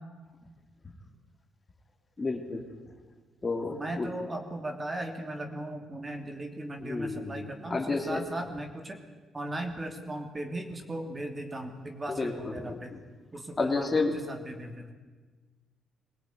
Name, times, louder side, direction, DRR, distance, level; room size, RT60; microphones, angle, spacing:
voice 1, 2.2-2.6 3.4-4.1 6.8-8.2 12.1-13.0 13.6-14.2, left 3 dB, 25° left, 3 dB, 3.3 m, -31 dB
voice 2, 3.6-9.0 9.3-12.9 13.3-14.9, right 1 dB, 25° right, 5 dB, 2.9 m, -37 dB
22.5 x 17.5 x 9.6 m, 1.4 s
cardioid pair, 90°, 0 cm